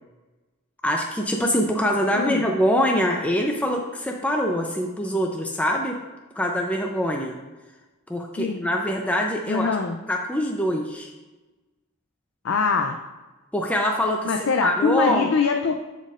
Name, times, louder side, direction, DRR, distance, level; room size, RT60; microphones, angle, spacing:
voice 1, 0.8-6.0 6.4-7.4 8.1-9.7 10.1-11.1 13.5-14.3 14.6-15.3, equal, 5° left, 0 dB, 0.5 m, -24 dB
voice 2, 2.1-2.4 8.4-8.7 9.5-10.0 12.4-13.0 14.2-15.8, left 5 dB, 65° left, 4 dB, 0.5 m, -23 dB
12.5 x 4.2 x 2.5 m, 1.2 s
head